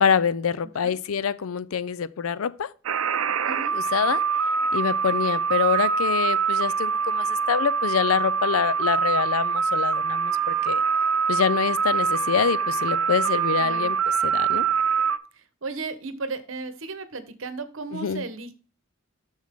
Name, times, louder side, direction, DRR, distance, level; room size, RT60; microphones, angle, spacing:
voice 1, 0.0-2.7 3.7-4.2 4.7-10.8 11.3-14.0 14.2-14.7 17.9-18.2, left 7 dB, 90° left, 0.5 m, -25 dB
sound 1, 2.8-15.2, right 6 dB, 85° right, 0.6 m, -24 dB
voice 2, 3.4-3.8 13.6-13.9 15.3-18.5, right 3 dB, 65° right, 1.0 m, -35 dB
7.4 x 6.3 x 3.6 m
head